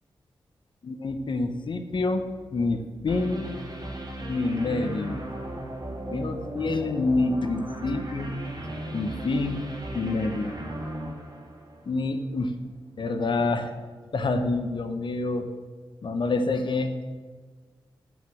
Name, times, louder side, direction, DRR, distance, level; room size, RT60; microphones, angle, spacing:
voice 1, 0.8-2.2 2.5-3.5 4.3-5.2 6.1-8.4 8.9-9.7 9.9-10.6 11.9-12.5 13.0-13.7 14.1-15.5 16.0-17.0, left 3 dB, 60° left, 8 dB, 1.1 m, -27 dB
sound 1, 3.1-12.1, right 1 dB, 45° right, 2.3 m, -36 dB
12.5 x 5.2 x 7.2 m, 1.4 s
cardioid pair, 60°, 9 cm